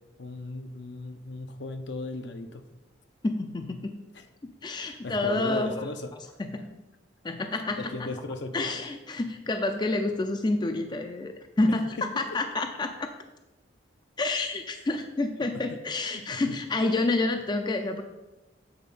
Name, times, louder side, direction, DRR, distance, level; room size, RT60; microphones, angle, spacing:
voice 1, 0.2-2.6 4.1-4.3 4.8-6.4 7.8-8.7 11.7-11.8 14.9-15.0 15.7-15.8 16.1-16.6, left 2 dB, 65° left, 8 dB, 0.7 m, -37 dB
voice 2, 3.2-4.0 4.4-5.9 6.4-6.7 7.2-8.1 8.5-13.1 14.2-18.0, left 2 dB, 25° left, 6 dB, 0.4 m, -29 dB
7.9 x 4.1 x 5.4 m, 1.0 s
head